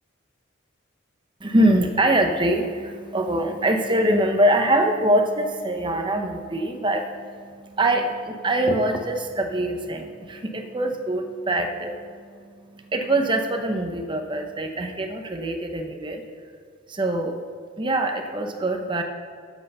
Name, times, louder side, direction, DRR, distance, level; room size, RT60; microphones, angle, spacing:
voice 1, 1.4-16.2 16.9-17.4 17.8-19.0, right 1 dB, 25° right, 5 dB, 0.8 m, -24 dB
13.0 x 8.1 x 5.5 m, 2.1 s
head